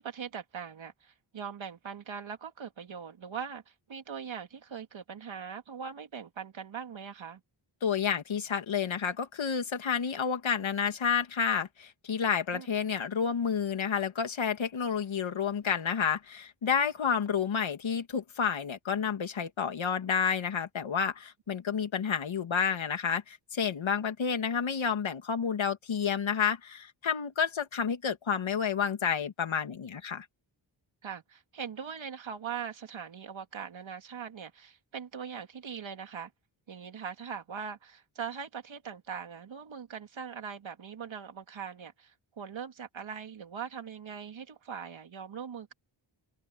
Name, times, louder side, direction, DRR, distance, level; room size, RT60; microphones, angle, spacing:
voice 1, 0.0-7.4 12.5-12.7 31.0-36.3 36.7-45.7, right 7 dB, 75° right, 2.9 m, -41 dB
voice 2, 7.8-30.3, left 7 dB, 75° left, 2.6 m, -30 dB
wide cardioid pair, 130°, 46 cm